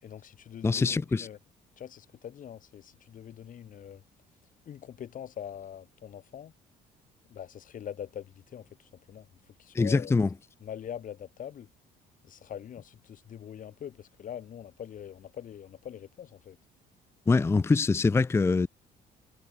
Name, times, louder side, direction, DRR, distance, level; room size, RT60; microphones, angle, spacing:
voice 1, 0.0-1.4 1.8-4.0 4.6-6.5 7.3-10.1 10.6-11.7 12.2-16.6, left 9 dB, 50° left, 7.0 m, -43 dB
voice 2, 0.6-1.3 9.7-10.3 17.3-18.7, left 4 dB, 15° left, 0.5 m, -24 dB
cardioid pair, 110°, 17 cm